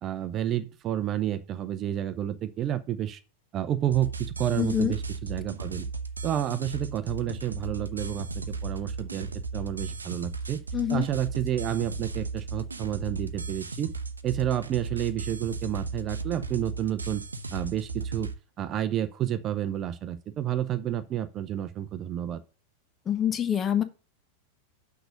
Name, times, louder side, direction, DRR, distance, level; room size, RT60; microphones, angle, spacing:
voice 1, 0.0-3.2 3.5-5.9 6.2-10.6 10.9-13.9 14.2-17.2 17.5-18.3 18.6-22.4, right 11 dB, 30° right, 0.6 m, -30 dB
sound 1, 3.9-18.3, right 4 dB, 80° right, 0.7 m, -35 dB
voice 2, 4.6-4.9 10.7-11.1 23.1-23.8, left 9 dB, 25° left, 0.8 m, -25 dB
6.1 x 5.1 x 6.4 m
figure-of-eight pair, 90°, 0 cm